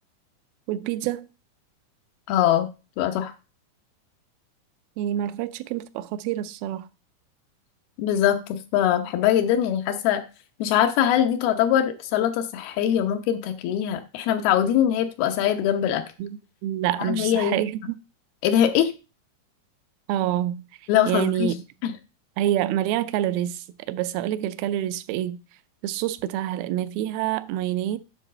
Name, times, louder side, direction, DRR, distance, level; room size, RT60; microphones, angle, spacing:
voice 1, 0.7-1.3 5.0-6.8 16.2-16.4 16.6-17.8 20.1-20.6 21.1-21.6 22.4-23.6 23.9-25.4 25.8-28.0, right 12 dB, 85° right, 2.5 m, -26 dB
voice 2, 2.3-2.7 3.0-3.3 8.0-10.2 10.6-16.0 17.0-17.6 18.4-18.9 20.9-21.5 21.8-21.9, left 10 dB, 90° left, 2.9 m, -22 dB
9.9 x 4.1 x 6.6 m
omnidirectional pair, 4.3 m